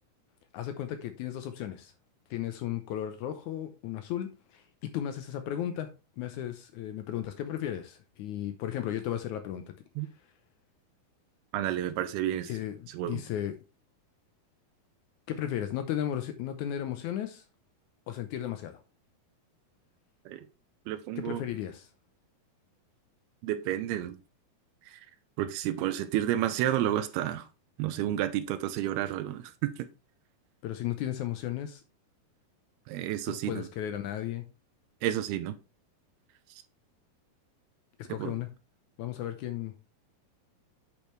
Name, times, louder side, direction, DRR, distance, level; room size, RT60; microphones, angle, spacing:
voice 1, 0.5-1.9 2.3-5.9 6.2-9.6 12.5-13.6 15.3-17.4 18.1-18.8 21.2-21.9 30.6-31.8 33.4-34.4 38.0-38.5 39.0-39.7, left 11 dB, 90° left, 1.7 m, -35 dB
voice 2, 11.5-12.5 12.9-13.2 20.3-20.4 20.9-21.4 23.4-24.2 24.9-25.0 25.4-27.5 27.8-29.9 32.9-33.7 35.0-35.6 38.2-38.3, right 12 dB, 85° right, 2.6 m, -31 dB
8.6 x 6.8 x 3.2 m
omnidirectional pair, 4.5 m